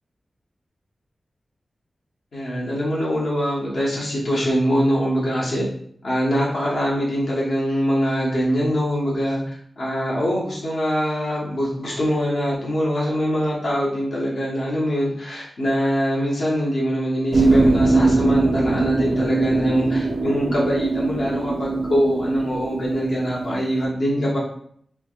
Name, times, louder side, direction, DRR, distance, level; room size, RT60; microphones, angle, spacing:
voice 1, 2.3-5.6 6.0-24.4, equal, 75° left, -5 dB, 0.9 m, -23 dB
sound 1, 17.3-23.9, right 2 dB, 65° right, 0.4 m, -21 dB
3.3 x 2.2 x 2.3 m, 0.64 s
wide cardioid pair, 120°, 0 cm